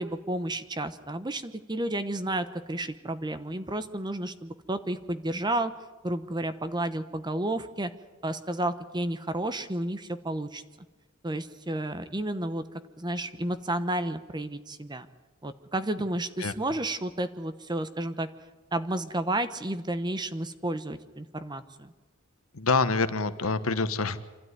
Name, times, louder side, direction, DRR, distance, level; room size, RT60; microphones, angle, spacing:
voice 1, 0.0-5.7 6.0-7.9 8.2-10.6 11.2-12.6 13.0-15.1 15.4-18.3 18.7-21.9, right 1 dB, 20° right, 11 dB, 1.0 m, -31 dB
voice 2, 22.5-24.2, left 4 dB, 70° left, 11 dB, 1.2 m, -26 dB
26.5 x 13.0 x 9.6 m, 1.2 s
head